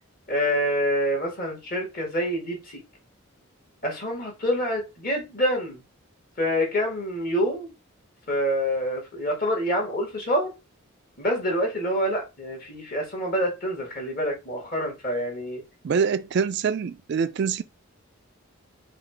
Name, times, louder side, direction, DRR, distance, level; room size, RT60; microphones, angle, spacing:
voice 1, 0.3-2.8 3.8-5.8 6.4-7.7 8.3-10.5 11.2-15.6, equal, 45° left, 1.9 m, -26 dB
voice 2, 15.8-17.6, right 6 dB, 50° right, 0.3 m, -25 dB
4.8 x 2.4 x 4.5 m
head